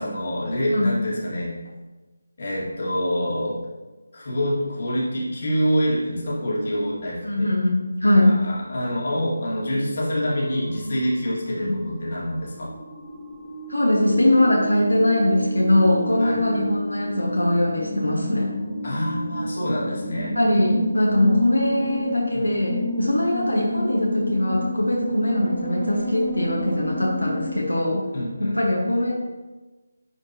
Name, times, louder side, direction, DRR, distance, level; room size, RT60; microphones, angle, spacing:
voice 1, 0.0-1.5 2.4-3.6 4.1-7.5 8.2-12.7 16.2-16.4 18.8-20.3 22.3-22.5 28.1-28.6, equal, 45° left, -6 dB, 2.2 m, -26 dB
voice 2, 7.2-8.3 11.6-11.8 13.7-18.5 20.3-28.1 28.4-29.1, left 1 dB, 75° left, -3 dB, 1.4 m, -21 dB
sound 1, 10.1-11.1 11.6-27.6, equal, 10° right, 0.8 m, -30 dB
10.5 x 4.4 x 3.0 m, 1.2 s
figure-of-eight pair, 155°, 0 cm